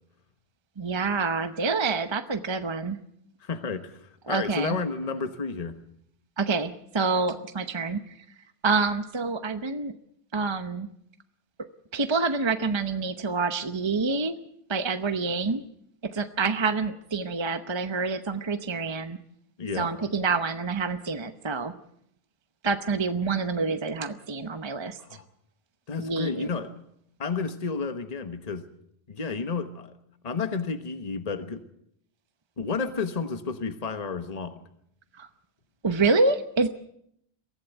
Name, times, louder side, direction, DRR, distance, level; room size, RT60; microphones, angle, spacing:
voice 1, 0.8-3.0 4.3-4.8 6.4-8.1 8.6-9.9 10.3-10.9 11.9-14.4 14.7-15.6 16.0-19.2 19.7-21.7 22.6-25.0 26.0-26.5 35.2-35.3 35.8-36.7, right 4 dB, 30° right, 9 dB, 0.9 m, -27 dB
voice 2, 3.4-5.8 19.6-19.9 25.0-25.2 25.9-26.7 27.2-28.7 29.1-29.9 30.2-31.7 32.6-34.6, left 4 dB, 40° left, 8 dB, 1.2 m, -31 dB
23.5 x 15.5 x 8.1 m, 0.74 s
omnidirectional pair, 1.0 m